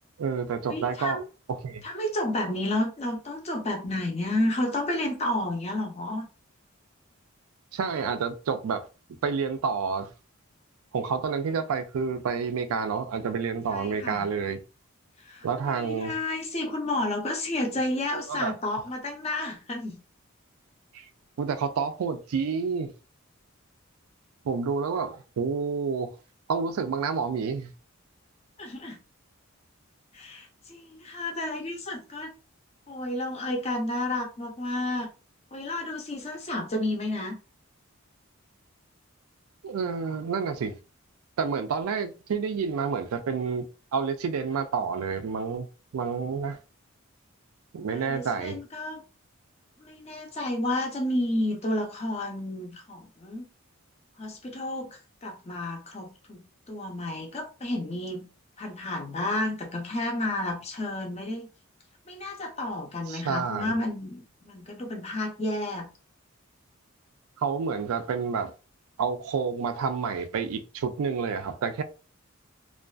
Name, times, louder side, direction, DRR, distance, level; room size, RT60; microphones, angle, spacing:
voice 1, 0.2-1.2 1.5-1.8 7.7-10.1 10.9-14.6 15.4-16.1 18.1-18.5 20.9-21.0 21.4-22.9 24.4-26.1 26.5-27.7 39.6-40.8 41.4-43.7 43.9-45.7 45.9-46.6 47.7-48.6 63.1-63.8 67.4-68.5 69.0-71.8, right 5 dB, 85° right, 0.4 m, -29 dB
voice 2, 0.7-1.2 1.8-6.3 13.7-14.2 15.2-20.0 28.6-29.0 30.1-32.3 32.9-35.1 35.5-37.4 47.9-49.0 49.8-53.5 54.2-56.4 56.7-58.3 58.6-61.5 62.1-65.9, left 1 dB, 30° left, 0.5 m, -31 dB
2.5 x 2.3 x 2.3 m
head